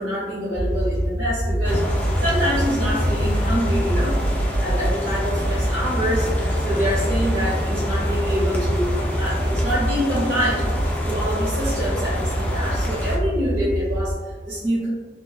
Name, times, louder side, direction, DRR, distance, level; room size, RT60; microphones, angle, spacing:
voice 1, 0.0-14.9, equal, 70° right, -11 dB, 1.2 m, -26 dB
sound 1, 0.5-14.1, equal, 80° left, 0.7 m, -25 dB
sound 2, 1.6-13.2, left 1 dB, 10° left, 0.4 m, -29 dB
2.9 x 2.2 x 2.3 m, 1.4 s
head